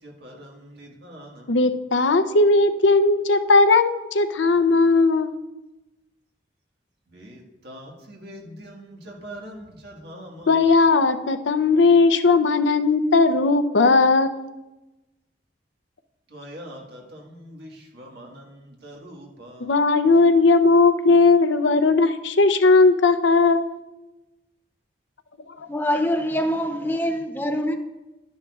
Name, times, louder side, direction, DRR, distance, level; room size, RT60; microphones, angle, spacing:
voice 1, 0.0-1.6 7.1-10.7 16.3-19.8, equal, 60° right, 1.7 m, -43 dB
voice 2, 1.5-5.3 10.5-14.4 19.6-23.7 25.5-25.6, left 3 dB, 80° left, 0.6 m, -17 dB
voice 3, 25.7-27.8, equal, 10° left, 0.6 m, -24 dB
11.0 x 10.0 x 2.4 m
head